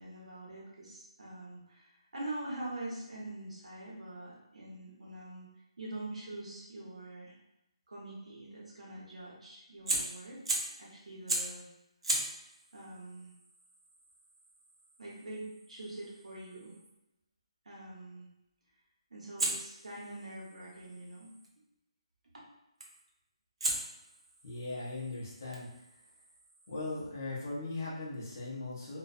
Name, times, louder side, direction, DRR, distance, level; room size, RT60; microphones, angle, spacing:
voice 1, 0.0-5.5 5.8-7.4 7.9-10.5 10.8-11.7 12.7-13.3 15.0-16.8 17.6-18.3 19.1-21.3, right 2 dB, 80° right, -4 dB, 1.0 m, -44 dB
Fire, 9.9-10.8 11.3-11.6 12.0-16.9 19.4-21.5 22.8-23.1 23.6-27.0, right 2 dB, 60° right, 0.5 m, -39 dB
voice 2, 24.4-25.9 26.7-29.0, left 2 dB, 25° left, -5 dB, 0.6 m, -39 dB
2.5 x 2.1 x 2.5 m, 0.88 s
hypercardioid pair, 180°, 3 cm